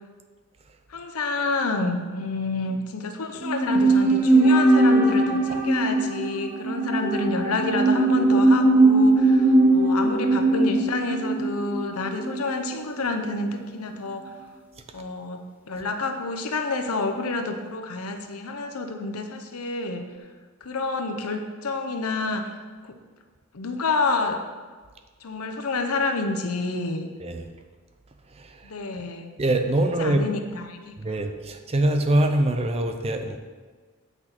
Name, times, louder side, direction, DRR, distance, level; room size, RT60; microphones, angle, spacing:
voice 1, 0.9-14.2 14.9-20.1 20.6-22.5 22.8-22.9 23.5-24.4 25.2-27.1 28.6-29.3 30.0-30.9, left 3 dB, 85° left, 6 dB, 0.8 m, -28 dB
sound 1, 3.4-12.7 13.0-13.1, right 2 dB, 10° right, 0.8 m, -20 dB
voice 2, 29.4-30.3 31.0-33.4, right 1 dB, 30° right, 6 dB, 0.5 m, -24 dB
8.0 x 6.0 x 4.4 m, 1.5 s
head